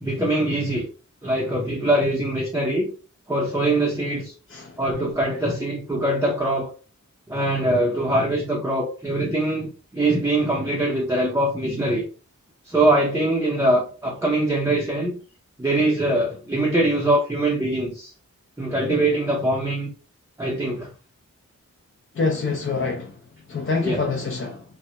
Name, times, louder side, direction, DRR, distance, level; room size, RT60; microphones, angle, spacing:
voice 1, 0.0-0.9 1.2-2.9 3.3-4.3 4.8-6.7 7.3-9.7 9.9-12.0 12.6-15.2 15.6-18.1 18.6-19.9 20.4-20.9 23.8-24.0, right 1 dB, 10° right, 0.5 m, -22 dB
voice 2, 22.2-23.1 23.5-24.6, left 4 dB, 40° left, 0.4 m, -25 dB
2.2 x 2.0 x 2.8 m
wide cardioid pair, 50°, 31 cm